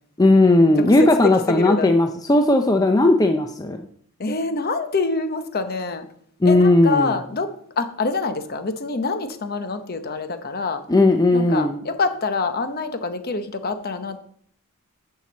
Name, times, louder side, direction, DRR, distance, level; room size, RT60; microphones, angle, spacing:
voice 1, 0.2-3.8 6.4-7.2 10.9-11.8, left 2 dB, 15° left, 5 dB, 0.5 m, -16 dB
voice 2, 1.5-1.9 4.2-6.1 6.4-7.5 7.8-10.8 11.3-14.2, left 4 dB, 45° left, 9 dB, 0.9 m, -26 dB
7.1 x 5.8 x 7.3 m, 0.64 s
head